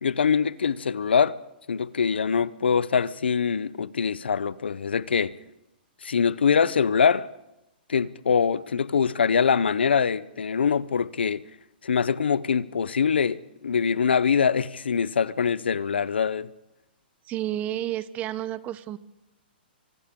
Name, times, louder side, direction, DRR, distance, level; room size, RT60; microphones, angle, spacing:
voice 1, 0.0-1.4 1.7-5.4 6.0-7.3 7.9-11.4 11.8-16.5, left 6 dB, 85° left, 0.8 m, -23 dB
voice 2, 17.2-19.0, right 12 dB, 25° right, 0.9 m, -31 dB
29.0 x 25.0 x 3.8 m
hypercardioid pair, 135°, 6 cm